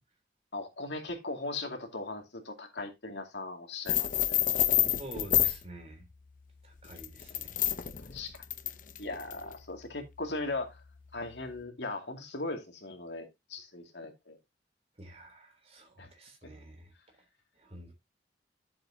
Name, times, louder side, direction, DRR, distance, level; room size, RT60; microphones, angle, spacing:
voice 1, 0.5-4.5 8.1-8.4 9.0-10.8 11.1-14.4 16.0-16.1, left 2 dB, 85° left, 2.4 m, -39 dB
sound 1, 3.9-5.6 6.8-9.5, left 12 dB, 50° left, 0.7 m, -28 dB
voice 2, 5.0-6.1 6.6-7.6 15.0-17.2 17.5-17.9, right 1 dB, 35° right, 3.2 m, -48 dB
11.5 x 7.5 x 2.7 m
head